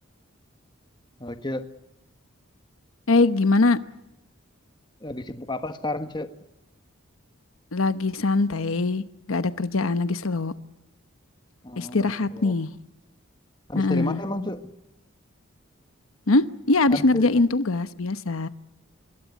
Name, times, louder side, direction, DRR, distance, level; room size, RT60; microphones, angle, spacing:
voice 1, 1.2-1.7 5.0-6.3 11.6-12.5 13.7-14.7 16.9-17.3, left 1 dB, 20° left, 1.4 m, -32 dB
voice 2, 3.1-3.8 7.7-9.0 9.3-10.5 11.8-12.7 13.8-14.2 16.3-18.5, left 3 dB, 80° left, 1.0 m, -22 dB
25.5 x 22.0 x 8.4 m
head